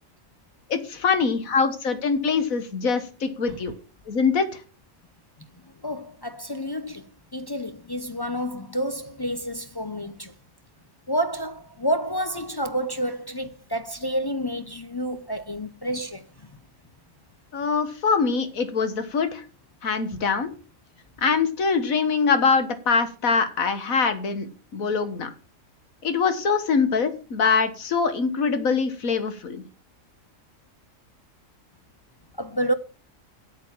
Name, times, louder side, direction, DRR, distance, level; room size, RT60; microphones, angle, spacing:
voice 1, 0.7-3.7 4.1-4.5 17.5-19.4 19.8-20.5 21.2-25.3 26.0-29.6, left 5 dB, 80° left, 1.9 m, -23 dB
voice 2, 5.8-7.0 7.3-10.3 11.1-16.5 32.4-32.7, equal, 30° left, 0.4 m, -29 dB
8.7 x 7.5 x 7.1 m
omnidirectional pair, 1.4 m